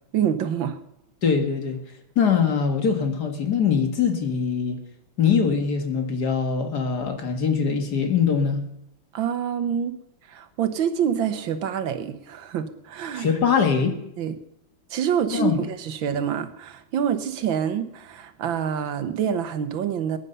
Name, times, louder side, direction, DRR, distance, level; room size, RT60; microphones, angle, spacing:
voice 1, 0.1-0.8 9.1-9.9 10.3-13.3 14.2-14.4 14.9-20.2, right 8 dB, 80° right, 10 dB, 1.8 m, -26 dB
voice 2, 1.2-1.8 2.2-4.8 5.2-8.6 13.1-13.9 15.3-15.6, left 6 dB, 55° left, 5 dB, 2.2 m, -22 dB
21.0 x 9.9 x 5.5 m, 0.81 s
omnidirectional pair, 2.1 m